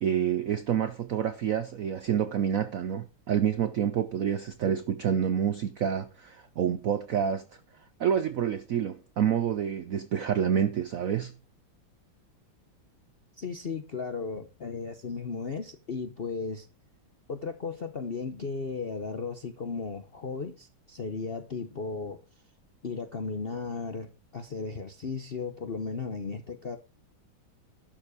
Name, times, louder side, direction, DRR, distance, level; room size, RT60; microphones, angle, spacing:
voice 1, 0.0-7.4 8.0-11.3, right 8 dB, 75° right, 0.8 m, -28 dB
voice 2, 13.4-16.7 17.3-22.2 22.8-26.8, left 4 dB, 55° left, 0.6 m, -35 dB
11.5 x 7.0 x 4.9 m
omnidirectional pair, 2.2 m